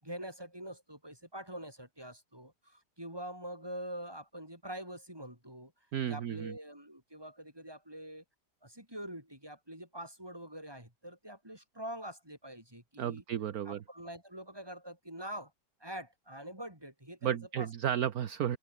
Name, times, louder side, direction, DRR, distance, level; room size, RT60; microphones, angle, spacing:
voice 1, 0.0-5.7 6.0-8.2 8.6-13.2 13.7-15.5 15.8-17.7, right 1 dB, 15° right, 7.2 m, -45 dB
voice 2, 5.9-6.5 13.0-13.8 17.2-18.6, right 10 dB, 60° right, 1.4 m, -33 dB
open air
omnidirectional pair, 1.8 m